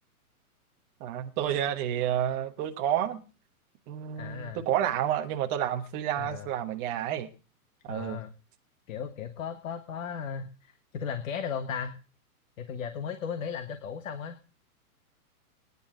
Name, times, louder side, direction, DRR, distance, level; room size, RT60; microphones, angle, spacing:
voice 1, 1.0-3.2 3.9-7.3 7.8-8.2, right 10 dB, 20° right, 1.2 m, -30 dB
voice 2, 4.2-4.7 6.2-6.5 7.9-8.3 8.9-11.9 12.6-14.4, left 7 dB, 60° left, 1.5 m, -36 dB
24.5 x 10.5 x 3.8 m
hypercardioid pair, 170°, 45 cm